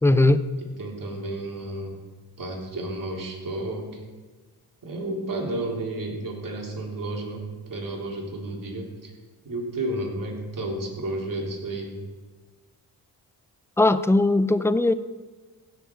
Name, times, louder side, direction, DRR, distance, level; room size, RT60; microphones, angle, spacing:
voice 1, 0.0-0.4 13.8-14.9, left 2 dB, 5° left, 14 dB, 0.6 m, -19 dB
voice 2, 0.6-2.0 2.4-4.0 4.8-9.1 9.4-12.0, right 2 dB, 50° right, -1 dB, 3.8 m, -32 dB
16.5 x 6.8 x 4.8 m, 1.3 s
supercardioid pair, 55°, 44 cm